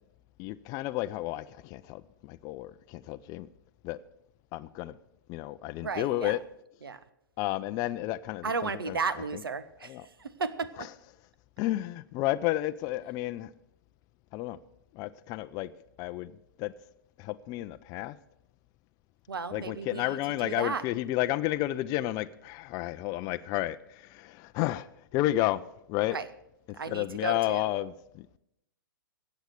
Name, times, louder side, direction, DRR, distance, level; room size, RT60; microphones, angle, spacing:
voice 1, 0.4-3.5 3.8-4.0 4.5-5.0 5.3-6.4 7.4-9.0 9.9-10.0 11.6-13.5 14.3-14.6 14.9-15.7 16.0-16.3 16.6-16.7 17.2-18.2 19.5-24.9 25.1-25.6 25.9-26.2 26.7-28.3, left 16 dB, 30° left, 10 dB, 0.5 m, -31 dB
voice 2, 5.8-6.4 6.8-7.0 8.4-10.9 19.3-20.8 26.1-26.3 26.8-27.7, right 5 dB, 80° right, 15 dB, 1.0 m, -34 dB
15.0 x 8.1 x 6.6 m, 0.80 s
figure-of-eight pair, 115°, 12 cm